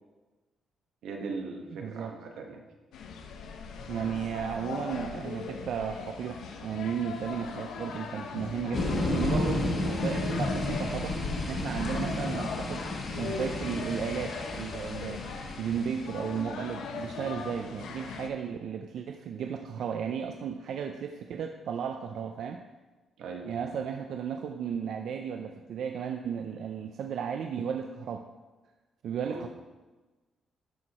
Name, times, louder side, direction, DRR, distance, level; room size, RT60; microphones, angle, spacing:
voice 1, 1.0-2.6 23.2-23.7 29.2-29.4, right 4 dB, 90° right, 2 dB, 1.2 m, -39 dB
voice 2, 1.7-2.1 3.9-11.2 11.5-12.9 13.2-15.2 15.6-22.6 23.4-28.3 29.0-29.5, right 7 dB, 65° right, 5 dB, 0.4 m, -34 dB
sound 1, 2.9-18.3, left 5 dB, 80° left, 0.8 m, -39 dB
sound 2, 8.7-16.2, left 1 dB, 40° left, 1.4 m, -32 dB
12.0 x 4.6 x 4.2 m, 1.2 s
cardioid pair, 170°, 0 cm